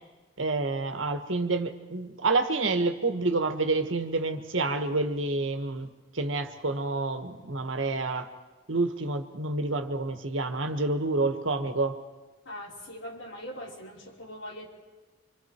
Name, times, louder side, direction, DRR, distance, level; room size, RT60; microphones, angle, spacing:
voice 1, 0.4-5.9 6.1-8.3 8.7-12.0, right 3 dB, 90° right, 7 dB, 1.6 m, -28 dB
voice 2, 12.5-14.7, equal, 75° left, 0 dB, 3.5 m, -41 dB
26.5 x 26.0 x 4.6 m, 1.2 s
head